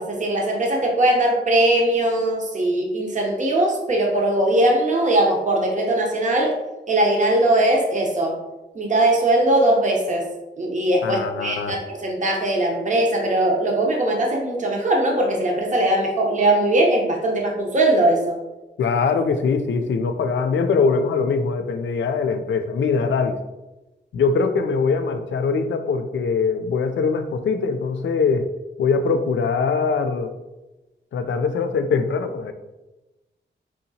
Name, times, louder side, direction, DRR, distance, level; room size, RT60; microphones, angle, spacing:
voice 1, 0.0-6.6 6.9-8.4 8.7-10.2 10.6-18.4, right 1 dB, 40° right, -1 dB, 0.8 m, -20 dB
voice 2, 11.0-11.8 18.8-23.4 24.1-28.5 28.8-30.3 31.1-32.5, left 5 dB, 80° left, 8 dB, 0.4 m, -22 dB
4.9 x 2.8 x 2.7 m, 1.1 s
wide cardioid pair, 115°, 19 cm